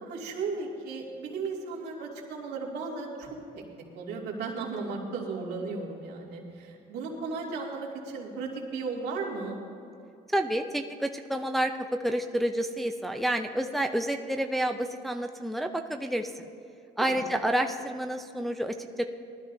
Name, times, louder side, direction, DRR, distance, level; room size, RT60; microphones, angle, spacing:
voice 1, 0.0-3.4 3.9-9.6 17.0-17.2, right 4 dB, 75° right, -2 dB, 2.4 m, -35 dB
voice 2, 10.3-16.5 17.0-19.0, right 1 dB, ahead, 5 dB, 0.5 m, -29 dB
19.5 x 13.0 x 2.7 m, 2.6 s
cardioid pair, 110°, 17 cm